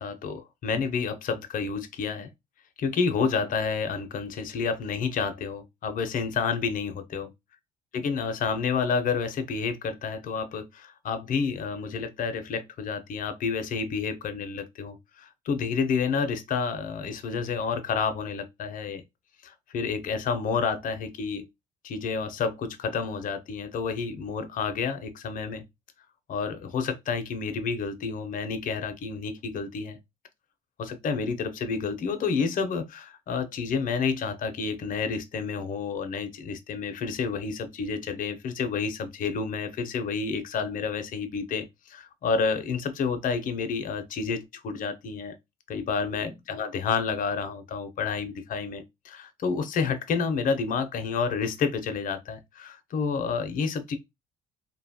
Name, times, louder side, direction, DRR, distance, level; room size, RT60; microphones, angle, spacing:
voice 1, 0.0-2.3 2.8-7.3 7.9-19.0 19.4-21.4 21.8-25.6 26.3-30.0 30.8-45.3 45.7-54.0, left 5 dB, 55° left, 0.6 m, -29 dB
2.8 x 2.3 x 2.7 m
cardioid pair, 110°, 17 cm